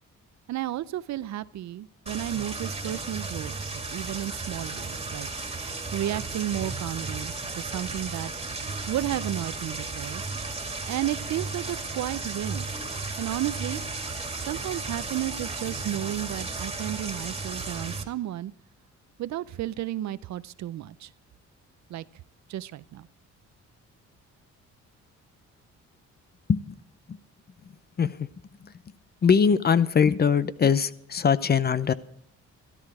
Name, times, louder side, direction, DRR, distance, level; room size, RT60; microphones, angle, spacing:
voice 1, 0.5-3.5 3.9-5.3 5.9-8.3 8.9-10.2 10.9-12.7 13.2-13.8 14.4-18.5 19.2-21.1 21.9-22.0 22.5-23.1, right 13 dB, 65° right, 16 dB, 0.6 m, -32 dB
sound 1, 2.1-18.0, right 3 dB, 20° right, 2.0 m, -34 dB
voice 2, 28.0-28.3 28.6-28.7 29.2-31.9, left 6 dB, 35° left, 16 dB, 0.6 m, -22 dB
13.0 x 12.0 x 4.8 m, 0.72 s
cardioid pair, 90°, 30 cm